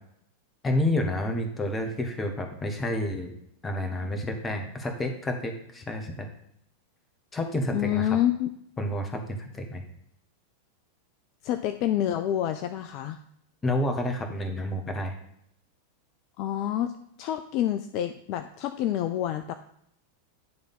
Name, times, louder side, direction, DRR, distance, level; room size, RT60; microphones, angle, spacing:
voice 1, 0.6-3.3 3.6-6.3 7.3-8.2 8.8-9.8 13.6-15.1, left 1 dB, 15° left, 4 dB, 1.2 m, -29 dB
voice 2, 7.7-8.5 11.4-13.2 16.4-16.9 17.2-19.5, left 11 dB, 40° left, 9 dB, 0.4 m, -27 dB
9.6 x 3.5 x 5.6 m, 0.71 s
figure-of-eight pair, 90°, 0 cm